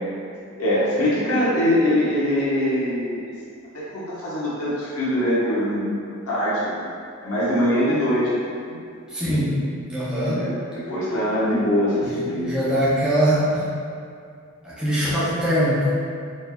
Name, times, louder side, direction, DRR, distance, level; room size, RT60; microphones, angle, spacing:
voice 1, 0.6-3.2 3.7-6.0 6.3-6.8 7.2-8.8 10.3-12.5, left 1 dB, 90° left, -9 dB, 1.2 m, -23 dB
voice 2, 9.1-9.6 9.9-10.5 12.0-13.7 14.6-15.9, equal, 5° right, -11 dB, 0.7 m, -22 dB
4.4 x 3.2 x 2.3 m, 2.4 s
head